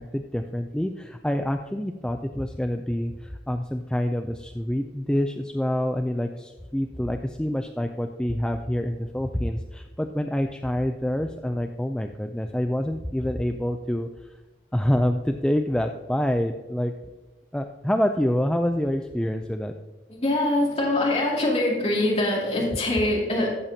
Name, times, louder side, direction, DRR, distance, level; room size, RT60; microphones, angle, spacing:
voice 1, 0.0-14.4 14.7-16.9 17.5-19.7, equal, 5° left, 5 dB, 0.3 m, -27 dB
voice 2, 20.1-23.5, left 1 dB, 35° left, -4 dB, 2.3 m, -23 dB
14.0 x 7.3 x 2.7 m, 1.3 s
head